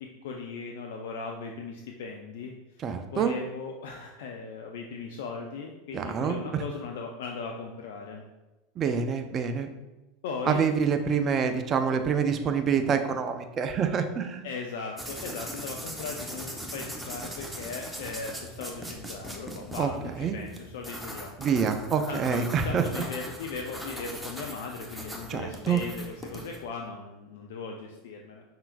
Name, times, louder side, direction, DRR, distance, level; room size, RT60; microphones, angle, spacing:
voice 1, 0.0-2.5 3.1-8.2 10.2-10.6 14.4-21.3 22.1-28.4, left 4 dB, 70° left, 2 dB, 0.4 m, -38 dB
voice 2, 2.8-3.4 5.9-6.6 8.8-9.7 10.5-14.5 19.8-20.4 21.4-22.8 25.3-25.8, right 6 dB, 35° right, 7 dB, 0.5 m, -27 dB
sound 1, 15.0-26.6, equal, 5° right, 0.9 m, -40 dB
5.5 x 3.8 x 2.4 m, 1.1 s
hypercardioid pair, 85°, 0 cm